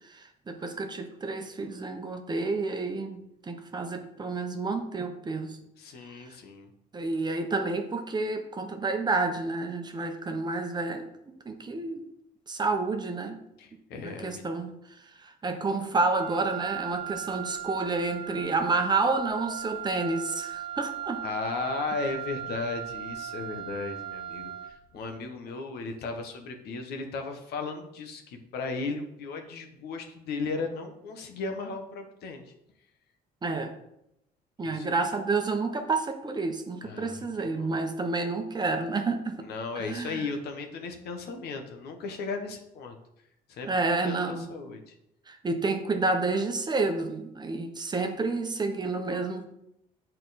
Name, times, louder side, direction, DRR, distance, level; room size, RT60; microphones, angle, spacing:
voice 1, 0.1-5.6 6.1-6.2 6.9-12.0 12.5-13.4 13.9-14.8 15.2-21.2 33.4-33.7 34.6-39.5 39.8-40.3 43.7-44.5 45.3-49.5, right 3 dB, 25° right, 5 dB, 1.0 m, -30 dB
voice 2, 5.8-6.7 13.6-14.5 21.2-32.5 34.6-34.9 36.8-37.7 39.4-43.0 43.5-44.9, left 4 dB, 70° left, 5 dB, 1.1 m, -36 dB
Wind instrument woodwind instrument, 16.2-24.9, right 11 dB, 80° right, 1.0 m, -38 dB
8.5 x 4.4 x 4.1 m, 0.80 s
cardioid pair, 110°, 17 cm